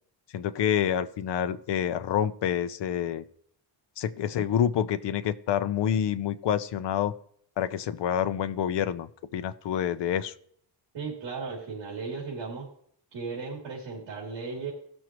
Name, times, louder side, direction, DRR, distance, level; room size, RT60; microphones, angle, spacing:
voice 1, 0.3-3.2 4.0-7.1 7.6-10.3, left 9 dB, 65° left, 11 dB, 0.7 m, -27 dB
voice 2, 10.9-12.7 13.1-14.7, right 4 dB, 65° right, -3 dB, 3.0 m, -36 dB
16.5 x 6.3 x 3.0 m, 0.65 s
wide cardioid pair, 155°, 44 cm